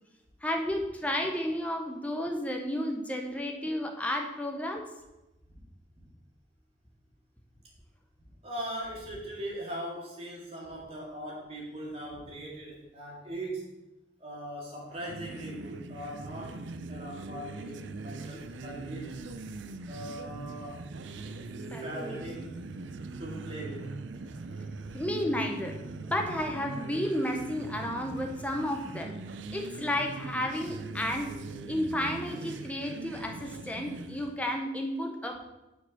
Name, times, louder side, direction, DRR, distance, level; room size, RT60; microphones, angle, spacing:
voice 1, 0.4-4.9 21.7-22.2 24.9-25.8 26.0-29.1 29.5-31.3 31.7-35.5, left 1 dB, 5° left, 2 dB, 0.7 m, -32 dB
voice 2, 8.4-13.7 14.2-16.6 16.9-19.2 19.9-20.9 21.7-22.6 23.2-23.9, right 1 dB, 30° right, -4 dB, 2.0 m, -40 dB
sound 1, 14.9-34.4, right 3 dB, 80° right, 0.5 m, -41 dB
6.6 x 4.7 x 5.8 m, 0.99 s
head